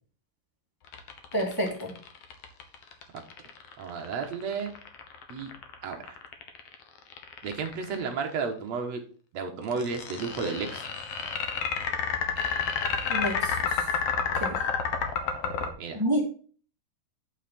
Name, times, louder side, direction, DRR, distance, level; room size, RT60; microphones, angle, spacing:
sound 1, 0.9-8.1 9.7-15.7, left 6 dB, 70° left, 1.5 m, -30 dB
voice 1, 1.3-1.9 13.1-13.8 14.4-14.5 15.9-16.2, equal, 5° right, -1 dB, 1.6 m, -29 dB
voice 2, 3.8-4.7 5.3-5.5 5.8-6.2 7.4-9.0 9.3-10.9 15.8-16.0, right 5 dB, 60° right, 4 dB, 1.9 m, -32 dB
9.3 x 5.7 x 4.3 m, 0.41 s
omnidirectional pair, 4.6 m